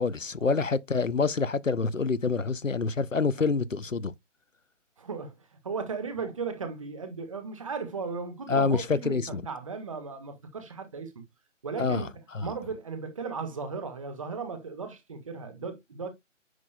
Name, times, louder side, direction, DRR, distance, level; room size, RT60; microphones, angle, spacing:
voice 1, 0.0-4.1 8.5-9.4 11.8-12.1 12.3-12.5, left 4 dB, 85° left, 0.8 m, -27 dB
voice 2, 5.0-11.1 11.6-12.1 12.4-16.1, right 5 dB, 25° right, 1.5 m, -36 dB
9.6 x 6.1 x 2.3 m
figure-of-eight pair, 150°, 38 cm